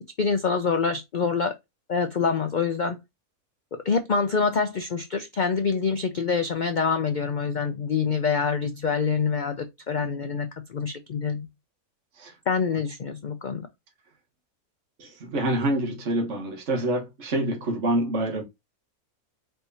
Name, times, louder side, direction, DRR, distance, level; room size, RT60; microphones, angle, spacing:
voice 1, 0.2-1.5 1.9-3.0 3.7-11.5 12.5-13.7, left 5 dB, 90° left, 0.4 m, -26 dB
voice 2, 15.0-18.4, right 1 dB, 50° right, 1.5 m, -26 dB
4.4 x 3.5 x 2.7 m
omnidirectional pair, 1.5 m